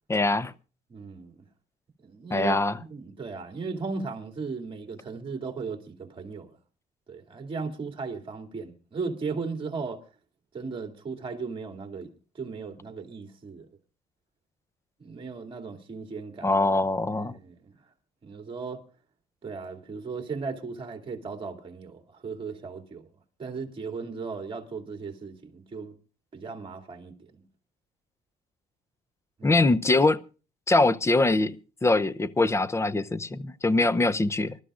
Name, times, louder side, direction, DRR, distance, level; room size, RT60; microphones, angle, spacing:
voice 1, 0.1-0.5 2.3-2.7 16.4-17.3 29.4-30.2 30.7-31.6 31.8-34.6, left 2 dB, 15° left, 0.6 m, -23 dB
voice 2, 0.9-1.4 2.0-6.5 7.1-10.0 10.5-13.7 15.0-16.5 17.1-17.7 18.2-18.8 19.4-23.1 23.4-25.9 26.3-27.4 29.4-29.6, right 4 dB, 30° right, 2.6 m, -36 dB
25.5 x 12.5 x 2.5 m
cardioid pair, 110°, 17 cm